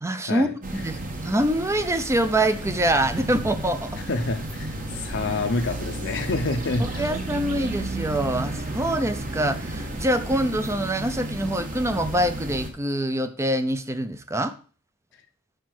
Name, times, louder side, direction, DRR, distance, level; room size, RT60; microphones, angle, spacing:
voice 1, 0.0-3.9 6.8-14.5, right 1 dB, 15° right, 10 dB, 0.6 m, -25 dB
sound 1, 0.6-12.7, right 1 dB, 40° right, 1.4 m, -33 dB
voice 2, 4.1-7.1, left 2 dB, 60° left, 1 dB, 0.7 m, -27 dB
6.5 x 5.3 x 6.1 m, 0.40 s
head